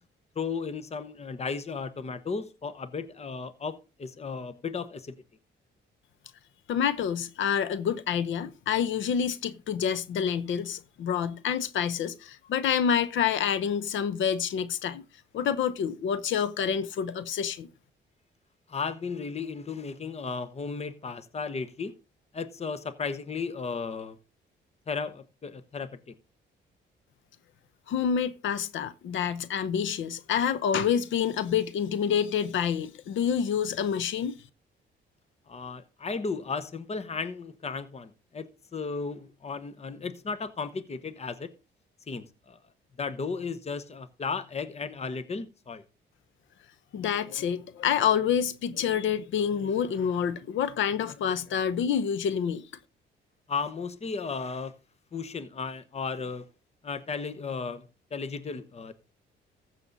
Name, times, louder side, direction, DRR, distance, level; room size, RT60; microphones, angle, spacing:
voice 1, 0.3-5.1 18.7-21.9 22.3-24.2 24.9-26.1 35.5-41.5 42.1-42.6 43.0-45.8 53.5-54.7 55.1-56.5 56.8-57.9 58.1-58.9, left 5 dB, 30° left, 1.0 m, -35 dB
voice 2, 6.7-15.0 15.3-17.7 27.9-34.4 46.9-52.6, left 8 dB, 75° left, 0.9 m, -27 dB
14.5 x 6.9 x 4.0 m
cardioid pair, 90°, 20 cm